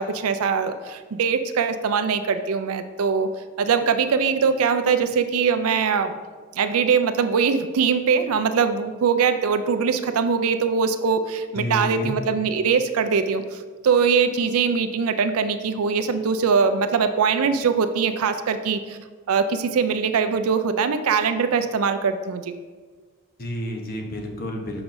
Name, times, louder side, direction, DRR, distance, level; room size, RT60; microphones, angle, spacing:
voice 1, 0.0-3.3 3.6-6.1 6.5-19.0 19.3-22.5, right 6 dB, 80° right, 9 dB, 0.4 m, -22 dB
voice 2, 11.5-12.1 23.4-24.8, equal, 45° left, 2 dB, 0.9 m, -30 dB
6.9 x 5.8 x 2.6 m, 1.5 s
head